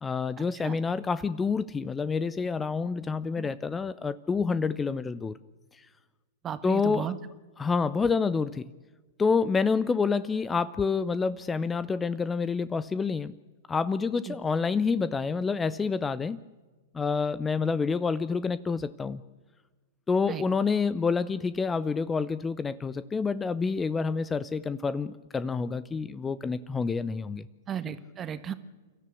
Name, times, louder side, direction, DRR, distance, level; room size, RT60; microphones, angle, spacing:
voice 1, 0.0-5.4 6.6-7.1 7.6-8.7 9.2-13.4 13.7-16.4 16.9-19.2 20.1-27.5, left 5 dB, 15° left, 16 dB, 0.7 m, -28 dB
voice 2, 6.4-7.2 14.3-14.4 20.3-20.4 27.7-28.5, right 8 dB, 25° right, 12 dB, 1.5 m, -34 dB
29.0 x 13.5 x 8.4 m, 1.3 s
figure-of-eight pair, 105°, 0 cm